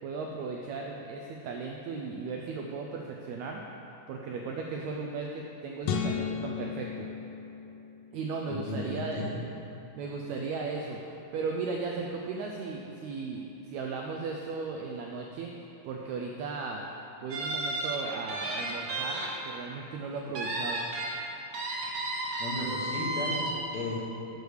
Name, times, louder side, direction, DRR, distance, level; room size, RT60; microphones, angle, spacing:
voice 1, 0.0-3.6 4.1-7.1 8.1-9.2 10.0-15.5 15.8-16.8 17.2-20.8, right 4 dB, 85° right, 0 dB, 1.6 m, -36 dB
sound 1, 5.8-8.2, left 7 dB, 85° left, 1.4 m, -34 dB
voice 2, 8.5-9.4 22.4-23.4 23.7-24.0, left 1 dB, 65° left, -5 dB, 2.3 m, -34 dB
sound 2, 17.3-19.3 19.6-19.8 20.4-21.1 21.5-23.5, right 2 dB, 65° right, 2.1 m, -33 dB
6.8 x 4.7 x 6.3 m, 2.9 s
omnidirectional pair, 3.7 m